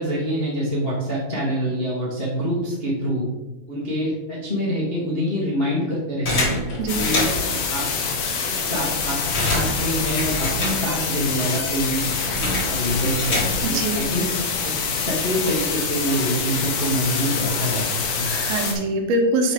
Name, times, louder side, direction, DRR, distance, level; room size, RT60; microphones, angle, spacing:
voice 1, 0.0-3.2 3.7-6.5 6.9-7.3 7.7-7.9 8.5-12.1 12.7-14.3 14.6-18.3, equal, 50° left, -6 dB, 0.6 m, -26 dB
sound 1, 6.2-7.6 8.2-8.3 8.5-11.2 11.5-13.8, left 1 dB, 30° left, 3.1 m, -27 dB
sound 2, 6.9-18.7, left 5 dB, 75° left, 3.0 m, -26 dB
voice 2, 13.6-14.1 18.2-19.5, right 2 dB, 85° right, 3 dB, 3.0 m, -23 dB
8.9 x 4.2 x 5.0 m, 1.1 s
omnidirectional pair, 4.3 m